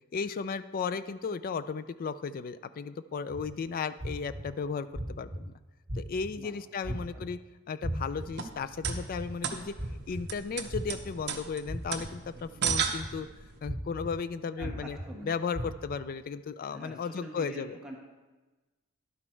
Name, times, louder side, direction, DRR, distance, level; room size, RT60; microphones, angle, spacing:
voice 1, 0.1-5.5 5.9-7.4 7.7-9.7 10.1-13.3 13.6-15.0 15.2-17.8, left 5 dB, 40° left, 14 dB, 0.3 m, -35 dB
sound 1, 3.3-3.4 4.0-4.4 4.9-5.4 5.9-6.3 6.8-7.3 7.8-8.2 8.8-9.3 9.8-10.2 10.7-11.1 11.7-12.1 12.7-13.1 13.6-14.1 14.6-15.0 15.5-15.9, equal, 30° right, 1.7 m, -36 dB
voice 2, 6.8-7.2 14.6-15.3 16.7-18.0, right 1 dB, 5° right, -2 dB, 1.2 m, -45 dB
sound 2, 8.2-13.6, right 7 dB, 50° right, 0.8 m, -35 dB
11.0 x 6.2 x 4.4 m, 1.2 s
head